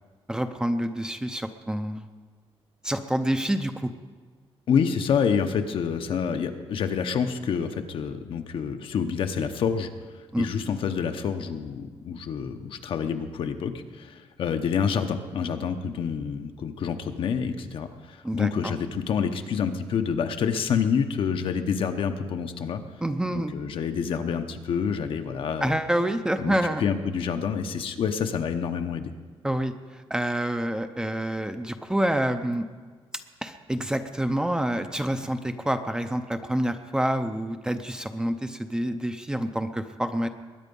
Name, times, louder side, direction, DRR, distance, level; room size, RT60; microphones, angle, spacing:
voice 1, 0.3-2.1 2.8-3.9 10.3-10.5 18.2-18.7 23.0-23.8 25.6-26.8 29.4-32.7 33.4-40.3, right 1 dB, 5° right, 7 dB, 0.6 m, -27 dB
voice 2, 4.7-9.9 10.4-22.8 23.5-25.8 26.4-29.1, left 7 dB, 60° left, 7 dB, 0.9 m, -27 dB
21.5 x 9.6 x 5.4 m, 1.5 s
wide cardioid pair, 160°, 10 cm